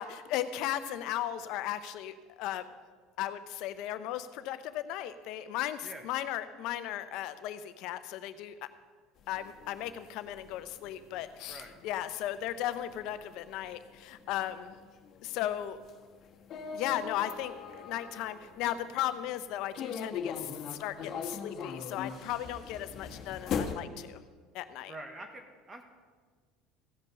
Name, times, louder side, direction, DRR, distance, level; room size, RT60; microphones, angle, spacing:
voice 1, 0.0-2.6 3.2-8.6 9.3-14.8 15.2-15.8 16.7-17.5 17.8-24.2 24.5-24.9, left 12 dB, 65° left, 12 dB, 0.7 m, -36 dB
sound 1, 9.2-19.1 19.7-23.7, left 6 dB, 50° left, 1.4 m, -41 dB
voice 2, 24.9-25.8, right 2 dB, 25° right, 4 dB, 1.3 m, -46 dB
15.5 x 5.3 x 6.9 m, 1.5 s
supercardioid pair, 95°, 0 cm